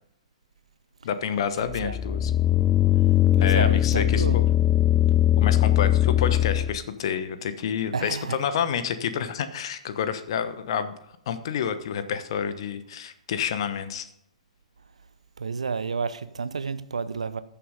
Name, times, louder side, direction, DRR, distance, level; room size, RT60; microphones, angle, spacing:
voice 1, 1.0-2.3 3.4-4.4 5.4-10.9 11.3-14.1, left 7 dB, 50° left, 1.1 m, -29 dB
sound 1, 1.7-6.8, left 13 dB, 20° left, 0.4 m, -20 dB
voice 2, 2.9-4.4 7.9-8.4 15.4-17.4, right 5 dB, 75° right, 0.7 m, -31 dB
14.0 x 7.0 x 5.1 m
figure-of-eight pair, 115°, 4 cm